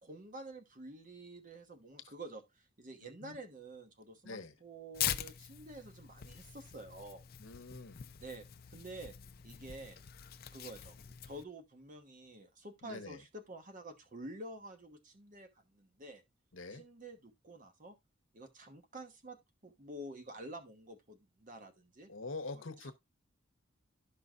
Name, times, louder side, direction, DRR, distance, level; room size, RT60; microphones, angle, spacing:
voice 1, 0.0-7.3 8.2-8.4 8.7-9.1 9.4-10.0 10.5-11.0 11.2-16.2 16.7-17.9 18.3-22.1 22.5-22.9, right 1 dB, 40° right, 1.1 m, -49 dB
voice 2, 3.0-3.4 4.2-4.5 7.4-8.0 12.8-13.2 16.5-16.8 22.1-22.9, left 3 dB, 75° left, 1.0 m, -45 dB
Tearing, 4.9-11.4, left 11 dB, 50° left, 0.5 m, -43 dB
11.5 x 5.6 x 2.4 m
head